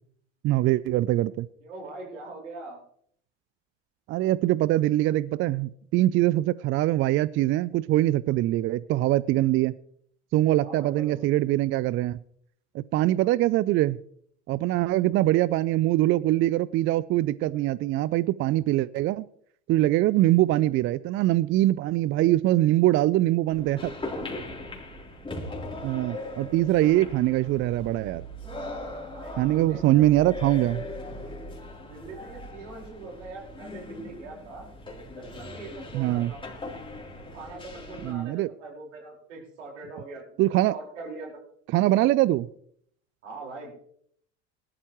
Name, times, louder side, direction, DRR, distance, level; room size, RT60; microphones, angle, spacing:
voice 1, 0.4-1.5 4.1-9.7 10.3-12.2 12.7-14.0 14.5-19.2 19.7-23.9 25.8-28.2 29.4-30.8 35.9-36.3 38.0-38.5 40.4-40.7 41.7-42.5, right 15 dB, 35° right, 0.4 m, -23 dB
voice 2, 1.6-2.8 10.6-11.3 29.1-30.0 31.8-34.7 35.1-36.4 37.3-40.4 40.7-41.4 43.2-43.7, right 3 dB, 80° right, 4.8 m, -42 dB
Lyon Ambience Salle de billard, 23.5-38.1, left 1 dB, 15° left, 3.4 m, -39 dB
18.5 x 12.5 x 3.1 m
hypercardioid pair, 80°, 36 cm